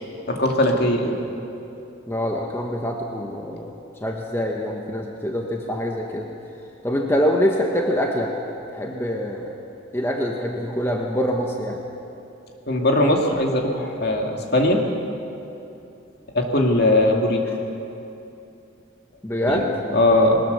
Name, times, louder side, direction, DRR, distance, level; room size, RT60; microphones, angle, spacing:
voice 1, 0.3-1.2 12.7-14.8 16.3-17.4 19.5-19.6 19.9-20.4, left 1 dB, 50° left, 1 dB, 2.3 m, -19 dB
voice 2, 2.1-3.7 4.0-6.3 6.8-8.3 8.7-9.6 9.9-11.8 19.2-19.7, equal, 10° left, 0 dB, 1.2 m, -24 dB
21.0 x 19.5 x 6.7 m, 2.8 s
head